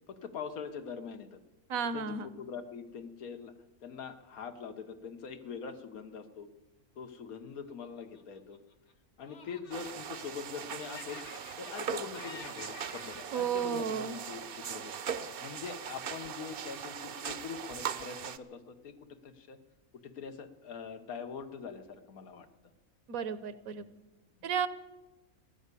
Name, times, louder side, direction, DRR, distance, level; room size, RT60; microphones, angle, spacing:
voice 1, 0.1-1.4 1.9-3.5 3.8-6.5 7.0-8.6 9.2-11.2 11.6-14.9 15.4-19.6 20.0-22.5 23.7-23.9 24.4-24.5, left 6 dB, 85° left, 8 dB, 1.5 m, -43 dB
voice 2, 1.7-2.3 13.3-14.2 23.1-23.9 24.4-24.7, right 7 dB, 75° right, 14 dB, 1.3 m, -33 dB
Laughter, 7.7-8.9 9.2-10.6 10.8-11.9 12.1-14.7, left 4 dB, 55° left, 1.5 m, -51 dB
sound 1, 9.7-18.4, right 7 dB, 55° right, 0.7 m, -40 dB
15.5 x 11.0 x 8.3 m, 1.1 s
omnidirectional pair, 1.5 m